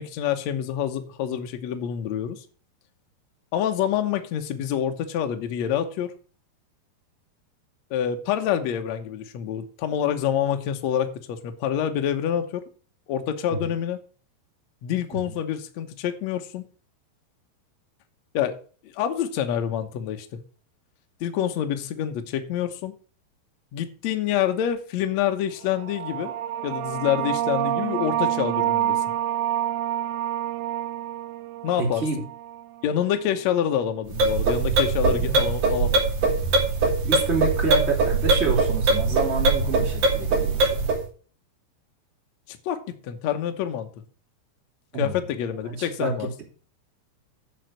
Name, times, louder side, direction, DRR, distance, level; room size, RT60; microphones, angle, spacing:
voice 1, 0.0-2.4 3.5-6.1 7.9-12.6 13.1-14.0 14.8-16.7 18.3-18.6 18.9-20.3 21.2-22.9 23.7-26.3 26.6-29.0 31.6-32.0 32.8-36.0 42.5-43.9 45.0-46.3, left 9 dB, 85° left, 1.5 m, -27 dB
sound 1, 25.7-33.0, right 12 dB, 85° right, 2.9 m, -28 dB
voice 2, 31.8-32.2 37.1-40.8 44.9-45.2 45.7-46.4, right 3 dB, 20° right, 2.7 m, -27 dB
sound 2, 34.1-41.0, right 3 dB, 55° right, 2.9 m, -22 dB
9.1 x 5.8 x 6.4 m
omnidirectional pair, 4.8 m